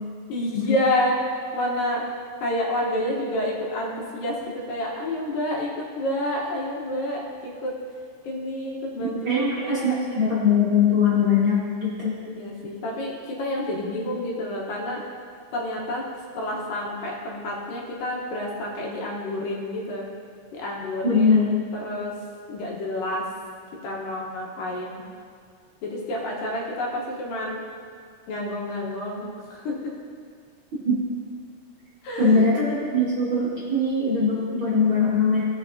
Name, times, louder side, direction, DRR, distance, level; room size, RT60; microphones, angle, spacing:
voice 1, 0.3-2.1 2.4-5.7 6.0-7.7 8.2-10.0 12.3-15.0 15.5-16.0 16.4-20.1 20.5-21.4 21.8-22.2 22.5-23.2 23.8-25.0 25.8-27.6 28.3-29.8 32.0-32.5, left 1 dB, 75° left, -2 dB, 2.7 m, -29 dB
voice 2, 9.0-12.1 21.0-21.5 30.8-31.0 32.2-35.4, left 4 dB, 45° right, -10 dB, 1.8 m, -21 dB
17.0 x 5.9 x 2.7 m, 2.2 s
omnidirectional pair, 4.1 m